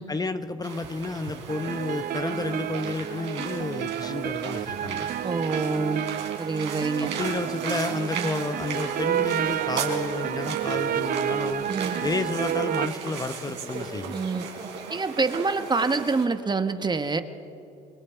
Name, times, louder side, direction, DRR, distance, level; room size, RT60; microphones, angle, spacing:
voice 1, 0.1-5.1 7.0-11.7 12.0-14.1, left 3 dB, 20° left, 10 dB, 1.0 m, -31 dB
sound 1, 0.6-16.2, right 6 dB, 70° right, 3.9 m, -37 dB
sound 2, 1.5-12.9, right 11 dB, 50° right, 0.6 m, -30 dB
voice 2, 5.2-6.0 6.4-7.1 8.1-8.3 11.7-12.0 14.1-14.5 14.9-17.2, right 4 dB, 25° right, 9 dB, 1.2 m, -26 dB
28.5 x 21.0 x 4.6 m, 2.7 s
supercardioid pair, 75°, 19 cm